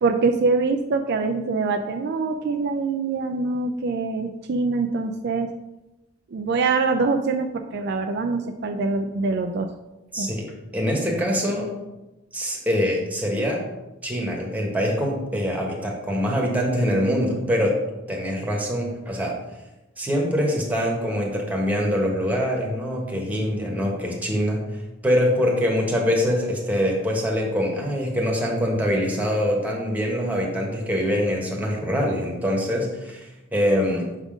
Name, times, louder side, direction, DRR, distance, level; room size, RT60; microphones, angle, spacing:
voice 1, 0.0-5.5 6.3-9.7 10.2-10.3, right 4 dB, 55° right, 5 dB, 0.4 m, -24 dB
voice 2, 10.1-11.7 12.3-13.6 14.0-17.8 18.1-19.3 20.0-24.6 25.0-34.1, equal, 10° right, -1 dB, 1.3 m, -24 dB
6.4 x 3.6 x 5.0 m, 1.0 s
head